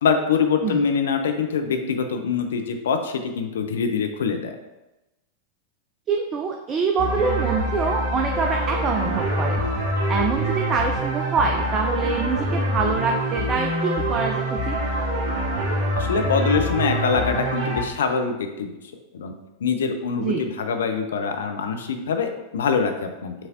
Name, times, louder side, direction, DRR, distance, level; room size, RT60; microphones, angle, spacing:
voice 1, 0.0-4.6 16.0-18.7 19.1-19.3 19.6-23.3, left 5 dB, 65° left, 6 dB, 0.5 m, -24 dB
voice 2, 6.1-9.6 10.1-14.8 20.2-20.4, right 5 dB, 30° right, 2 dB, 0.4 m, -25 dB
sound 1, 7.0-17.8, equal, 45° right, 1.1 m, -25 dB
6.0 x 3.2 x 2.6 m, 0.98 s
figure-of-eight pair, 90°, 0 cm